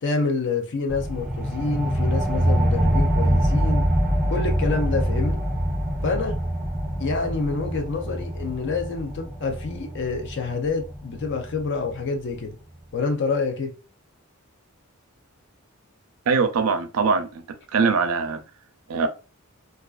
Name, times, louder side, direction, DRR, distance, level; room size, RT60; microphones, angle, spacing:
voice 1, 0.0-3.9 4.3-5.4 6.0-6.4 7.0-12.6 12.9-13.7, left 4 dB, 55° left, 0.5 m, -27 dB
sound 1, 0.9-12.0, equal, 5° right, 0.5 m, -25 dB
voice 2, 16.3-17.4 17.7-18.4 18.9-19.1, right 5 dB, 85° right, 0.5 m, -22 dB
2.4 x 2.3 x 2.3 m
head